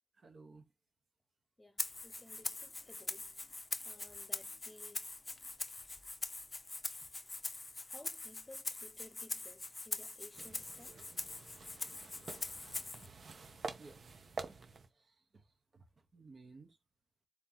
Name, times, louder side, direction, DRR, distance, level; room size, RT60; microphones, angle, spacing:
voice 1, 0.1-0.6 13.0-13.1 13.8-14.6 14.9-16.8, right 3 dB, 65° right, 1.1 m, -58 dB
voice 2, 1.6-3.3 3.8-5.1 7.9-11.0, left 1 dB, 15° left, 1.0 m, -57 dB
Rattle (instrument), 1.8-13.1, left 3 dB, 35° left, 0.4 m, -43 dB
sound 1, 10.3-14.9, right 4 dB, 85° right, 0.8 m, -48 dB
4.2 x 3.0 x 3.9 m
wide cardioid pair, 110°, 0 cm